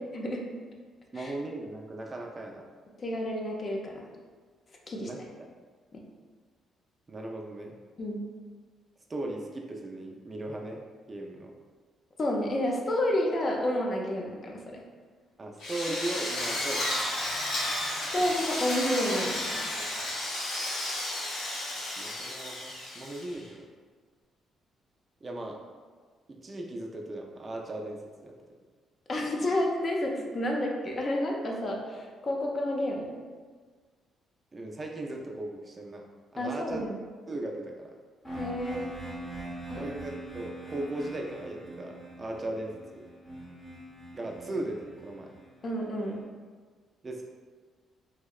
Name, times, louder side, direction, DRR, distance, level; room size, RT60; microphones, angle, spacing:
voice 1, 1.1-2.6 5.0-5.2 7.1-7.7 9.1-10.8 11.1-11.5 15.4-16.9 18.1-18.3 19.8-19.9 22.0-23.7 25.2-25.6 26.3-28.3 34.5-36.0 36.3-36.8 37.3-37.9 39.7-43.0 44.1-45.3 47.0-47.2, right 1 dB, 30° right, 1 dB, 0.3 m, -37 dB
voice 2, 3.0-4.0 4.9-5.2 5.9-6.0 8.0-8.3 12.2-14.8 18.1-19.7 29.1-33.2 36.4-37.0 38.3-38.9 39.7-39.9 45.6-46.2, left 1 dB, 40° left, 0 dB, 0.4 m, -30 dB
Drill, 15.6-23.5, left 1 dB, 80° left, 0.7 m, -33 dB
sound 1, 38.2-46.1, right 1 dB, 20° left, 0.8 m, -43 dB
2.7 x 2.0 x 2.3 m, 1.5 s
cardioid pair, 90°, 0 cm